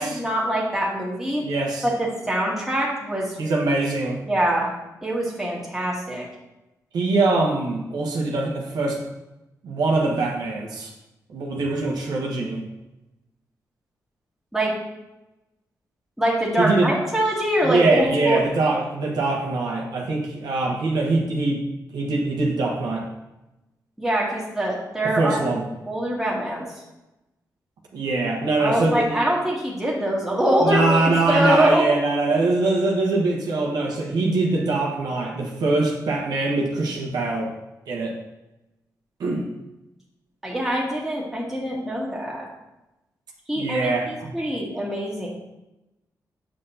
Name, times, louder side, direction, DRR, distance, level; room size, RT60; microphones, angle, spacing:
voice 1, 0.0-1.4 1.8-3.4 4.3-4.7 5.0-6.2 14.5-14.8 16.2-18.4 24.0-25.6 25.9-26.6 28.6-31.8 40.4-42.5 43.5-45.3, right 1 dB, 5° right, -4 dB, 1.6 m, -24 dB
voice 2, 1.4-1.8 3.4-4.2 6.9-9.0 9.6-10.9 11.3-12.6 16.6-16.9 17.6-21.6 21.9-23.1 25.0-25.6 27.9-29.2 30.6-37.5 37.9-38.1 39.2-39.5 43.6-44.3, right 2 dB, 85° right, -1 dB, 1.3 m, -23 dB
7.5 x 5.5 x 2.8 m, 0.97 s
cardioid pair, 75°, 7 cm